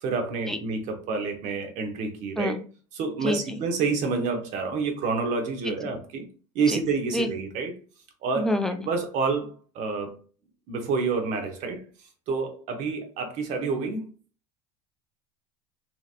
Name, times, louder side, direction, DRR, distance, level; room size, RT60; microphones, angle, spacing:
voice 1, 0.0-2.6 2.9-6.2 6.5-7.8 8.2-8.5 8.9-10.1 10.7-11.8 12.3-14.1, right 4 dB, 55° right, 1.1 m, -28 dB
voice 2, 3.2-3.6 6.7-6.8 7.1-7.3 8.4-8.9, left 1 dB, 5° left, 0.5 m, -27 dB
3.1 x 2.8 x 2.5 m
hypercardioid pair, 85°, 15 cm